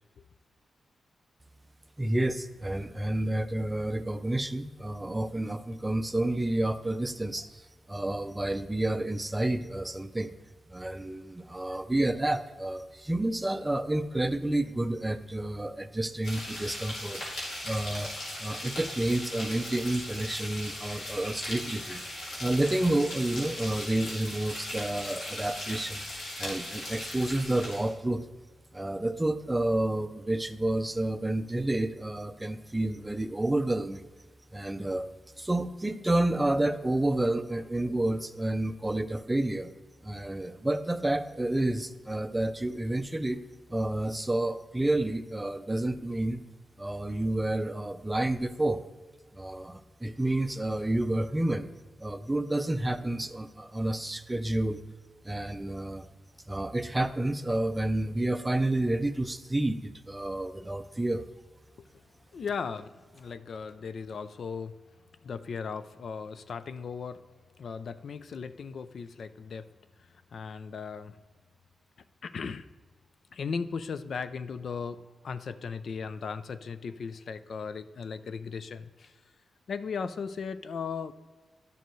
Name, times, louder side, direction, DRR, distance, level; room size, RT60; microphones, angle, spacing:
voice 1, 2.0-7.6 7.9-10.3 10.7-17.2 17.6-18.1 18.4-22.0 22.4-26.1 26.4-28.3 28.7-34.0 34.5-35.1 35.4-39.7 40.0-43.4 43.7-46.4 46.8-48.8 49.3-51.7 52.0-54.8 55.2-56.1 56.5-61.2, right 1 dB, 15° right, 10 dB, 0.4 m, -30 dB
sound 1, 16.2-27.9, left 1 dB, 85° left, 2.8 m, -38 dB
voice 2, 62.3-64.7 65.2-67.2 67.6-69.7 70.3-71.2 72.2-72.7 73.3-79.2 79.7-81.1, left 5 dB, 60° left, 12 dB, 0.4 m, -37 dB
11.5 x 6.8 x 3.1 m, 1.4 s
wide cardioid pair, 130°, 0 cm